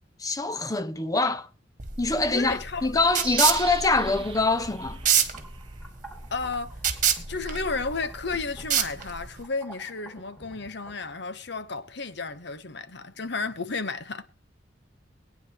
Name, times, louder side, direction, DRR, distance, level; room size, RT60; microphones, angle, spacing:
voice 1, 0.2-1.5 2.0-5.0, left 3 dB, 20° left, 0.8 m, -24 dB
sound 1, 1.8-9.4, right 8 dB, 45° right, 1.7 m, -28 dB
voice 2, 2.3-3.1 6.3-6.8 7.3-14.2, left 4 dB, 65° left, 1.1 m, -33 dB
sound 2, 3.2-5.8 6.3-6.4, right 6 dB, 30° right, 1.4 m, -40 dB
sound 3, 4.0-11.2, right 2 dB, ahead, 3.0 m, -49 dB
21.5 x 9.7 x 3.1 m
head